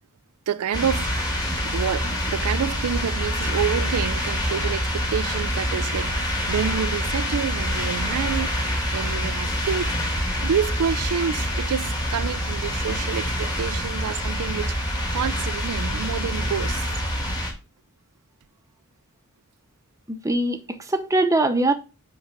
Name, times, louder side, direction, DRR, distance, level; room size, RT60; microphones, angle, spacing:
voice 1, 0.5-1.3 1.6-8.6 8.9-9.9 10.4-16.9, right 7 dB, 85° right, 0.4 m, -28 dB
sound 1, 0.7-17.5, equal, 20° left, 2.2 m, -26 dB
voice 2, 20.1-21.7, right 2 dB, 15° right, 0.8 m, -22 dB
9.5 x 3.8 x 5.2 m
head